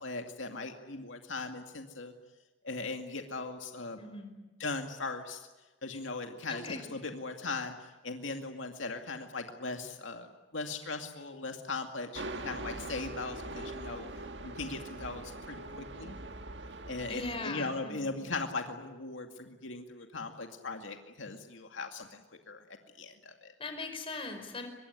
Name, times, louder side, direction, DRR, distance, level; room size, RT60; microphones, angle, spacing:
voice 1, 0.0-2.1 2.6-4.0 4.6-5.5 5.8-14.1 14.4-16.2 16.9-23.5, left 3 dB, 85° left, 5 dB, 2.3 m, -39 dB
voice 2, 4.0-4.5 6.5-6.8 17.0-18.2 23.6-24.7, left 3 dB, 30° left, 6 dB, 4.9 m, -40 dB
sound 1, 12.2-17.4, right 2 dB, 65° right, 1.7 m, -42 dB
24.5 x 22.0 x 9.8 m, 1.2 s
head